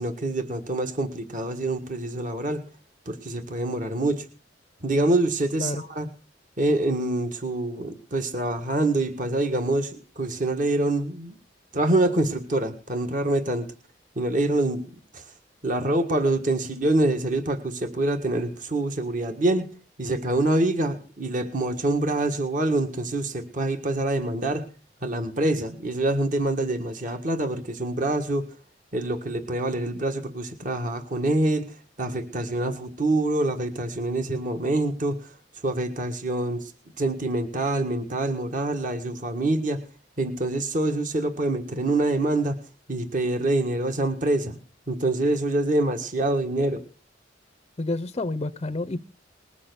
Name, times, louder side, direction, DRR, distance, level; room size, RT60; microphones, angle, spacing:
voice 1, 0.0-2.6 3.1-4.2 4.8-6.1 6.6-11.4 11.7-13.7 14.2-14.8 15.1-15.2 15.6-19.6 20.0-24.6 25.0-28.4 28.9-31.7 32.0-35.2 35.6-36.7 37.0-39.8 40.2-42.6 42.9-44.6 44.9-46.8, right 2 dB, 45° right, 1.7 m, -25 dB
voice 2, 47.8-49.0, left 2 dB, 30° left, 0.6 m, -29 dB
20.0 x 7.1 x 6.9 m
head